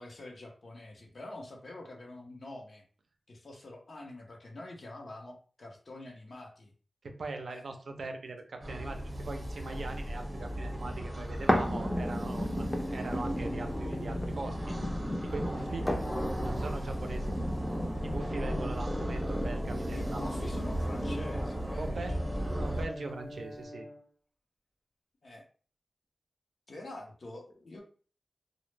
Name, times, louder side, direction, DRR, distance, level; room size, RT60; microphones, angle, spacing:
voice 1, 0.0-2.8 3.3-6.7 7.5-7.7 16.2-16.4 19.9-22.0 25.2-25.4 26.7-27.8, left 2 dB, 70° left, 0 dB, 0.6 m, -46 dB
voice 2, 7.0-14.6 15.2-15.9 16.4-17.4 18.0-20.2 21.8-22.2 22.5-23.9, right 3 dB, 85° right, 5 dB, 0.4 m, -40 dB
sound 1, 8.6-22.9, equal, 35° right, 0.7 m, -36 dB
sound 2, 11.5-21.5 22.0-22.1, equal, 10° left, 0.4 m, -35 dB
Brass instrument, 19.9-24.0, left 1 dB, 40° left, 0.7 m, -46 dB
2.0 x 2.0 x 3.1 m, 0.40 s
wide cardioid pair, 70°, 0 cm